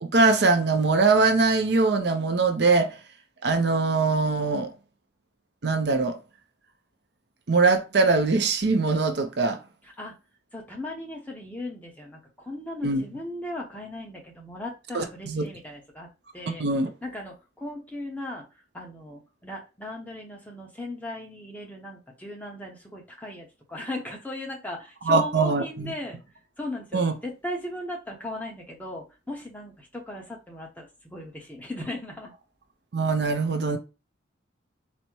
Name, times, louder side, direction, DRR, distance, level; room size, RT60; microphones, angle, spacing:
voice 1, 0.0-3.0 3.4-4.7 5.6-6.2 7.5-9.6 12.8-13.0 14.9-15.4 16.5-16.9 25.1-25.9 26.9-27.1 32.9-33.8, right 3 dB, 60° right, 0.6 m, -22 dB
voice 2, 10.5-16.1 16.3-16.6 17.0-18.4 18.7-26.2 26.6-32.3, left 1 dB, 10° left, 0.9 m, -37 dB
4.1 x 2.2 x 4.5 m
head